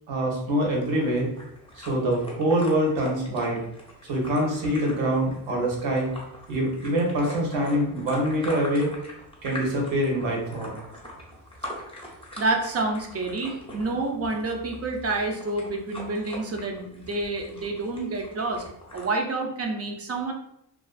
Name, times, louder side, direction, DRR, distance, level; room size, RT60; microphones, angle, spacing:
voice 1, 0.1-1.3 1.8-3.6 4.0-6.1 6.5-8.9 9.4-10.7, right 1 dB, 80° right, -1 dB, 0.9 m, -25 dB
sound 1, 0.7-19.1, equal, 10° left, 0.6 m, -42 dB
voice 2, 12.4-18.6 18.9-20.3, right 2 dB, 35° right, 3 dB, 0.4 m, -28 dB
2.4 x 2.3 x 2.3 m, 0.76 s
cardioid pair, 100°, 46 cm